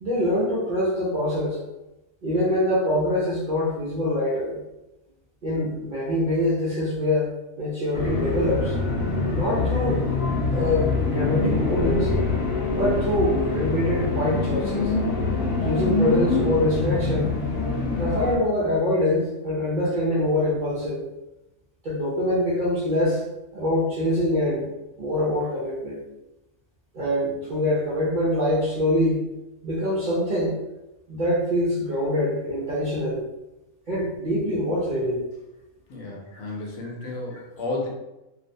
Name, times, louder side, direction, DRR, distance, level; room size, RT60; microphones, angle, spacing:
voice 1, 0.0-1.6 2.2-4.6 5.4-7.3 7.6-8.7 9.3-10.0 10.5-12.1 12.7-14.9 15.6-17.4 18.0-21.0 21.8-23.2 23.5-24.7 25.0-26.0 26.9-29.3 29.6-30.5 31.1-33.2 33.9-35.2 37.3-37.4, left 1 dB, 60° right, -9 dB, 0.5 m, -24 dB
sound 1, 7.9-18.4, left 3 dB, 55° left, 0.7 m, -25 dB
voice 2, 35.9-37.9, left 2 dB, 80° left, -2 dB, 1.0 m, -32 dB
2.5 x 2.1 x 2.6 m, 0.96 s
omnidirectional pair, 1.5 m